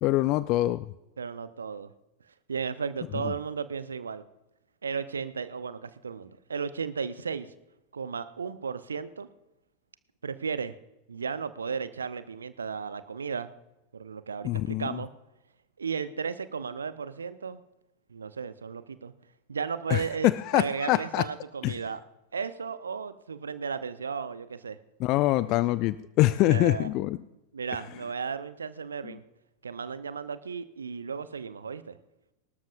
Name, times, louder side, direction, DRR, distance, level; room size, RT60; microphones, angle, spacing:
voice 1, 0.0-0.8 14.4-15.0 19.9-21.2 21.6-21.7 25.0-27.2, left 16 dB, 40° left, 17 dB, 0.4 m, -24 dB
voice 2, 1.2-1.9 2.5-4.2 4.8-7.5 7.9-9.3 10.2-10.8 11.1-13.5 13.9-15.1 15.8-17.6 18.1-19.1 19.5-22.0 22.3-24.8 26.4-26.9 27.5-29.2 29.6-32.0, right 6 dB, 70° right, 14 dB, 0.7 m, -34 dB
24.0 x 12.5 x 2.6 m, 0.95 s
figure-of-eight pair, 90°, 0 cm